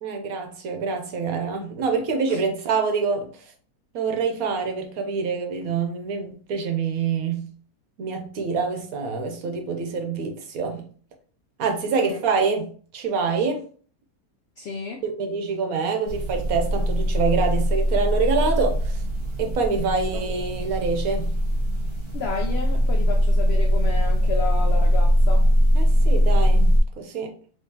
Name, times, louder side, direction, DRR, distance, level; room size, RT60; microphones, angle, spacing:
voice 1, 0.0-3.3 3.9-7.5 8.0-10.8 11.6-13.6 15.0-19.0 19.4-21.3 25.7-27.3, right 5 dB, 65° right, 1.1 m, -26 dB
voice 2, 14.6-15.0 19.8-20.2 22.1-25.5, left 5 dB, 80° left, 0.5 m, -32 dB
sound 1, 16.1-26.8, equal, 25° right, 0.8 m, -21 dB
3.7 x 3.1 x 2.8 m
omnidirectional pair, 1.7 m